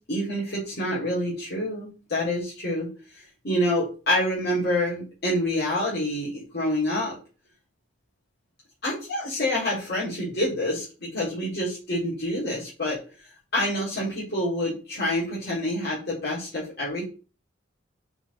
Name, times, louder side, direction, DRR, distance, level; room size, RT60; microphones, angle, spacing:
voice 1, 0.1-2.9 3.4-7.2 8.8-13.0 13.5-17.0, left 1 dB, 55° left, -9 dB, 3.5 m, -27 dB
5.9 x 4.1 x 4.2 m, 0.35 s
head